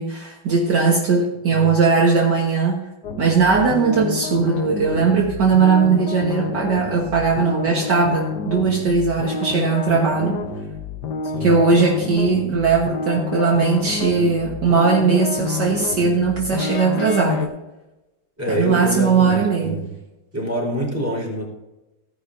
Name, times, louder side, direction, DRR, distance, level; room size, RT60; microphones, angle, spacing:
voice 1, 0.0-2.8 3.2-10.4 11.4-17.5 18.5-19.8, right 5 dB, 55° right, -2 dB, 2.0 m, -19 dB
sound 1, 3.0-17.5, left 5 dB, 60° left, 1.5 m, -29 dB
voice 2, 11.2-11.6 18.4-19.9 20.3-21.5, right 1 dB, 5° right, -4 dB, 4.3 m, -25 dB
17.0 x 10.0 x 2.7 m, 0.99 s
omnidirectional pair, 2.2 m